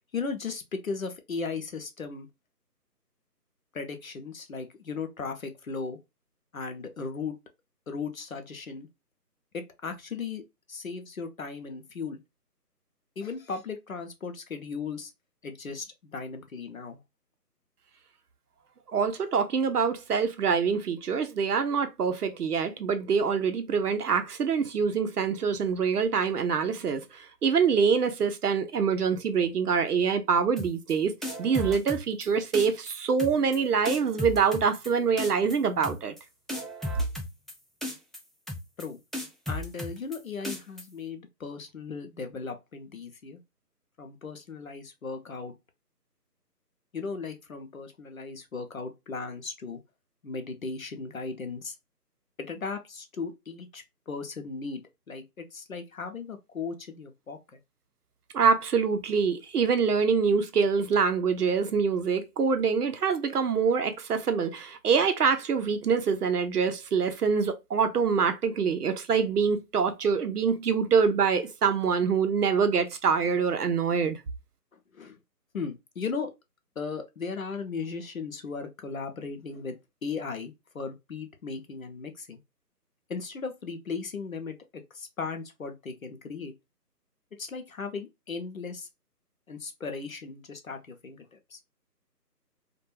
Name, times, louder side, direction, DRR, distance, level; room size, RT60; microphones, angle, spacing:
voice 1, 0.1-2.3 3.7-6.0 6.5-7.4 7.9-8.9 9.5-10.4 10.7-12.2 13.2-15.1 15.4-17.0 38.8-39.0 39.5-43.4 44.0-45.5 46.9-49.8 50.2-51.7 52.4-54.8 55.1-57.6 74.9-75.2 75.5-76.3 76.8-82.4 83.1-86.5 87.4-88.9 89.5-91.6, left 4 dB, 60° left, 0.5 m, -37 dB
voice 2, 18.9-27.1 27.4-31.1 31.4-36.1 58.3-74.2, right 6 dB, 65° right, 0.6 m, -25 dB
sound 1, 30.6-30.9 31.2-32.3 32.5-32.9 33.2-33.6 33.8-34.9 35.2-35.6 35.8-36.2 36.5-37.5 37.8-38.2 38.5-38.8 39.1-40.2 40.4-40.8, left 1 dB, ahead, 0.3 m, -34 dB
2.2 x 2.2 x 3.0 m
figure-of-eight pair, 175°, 49 cm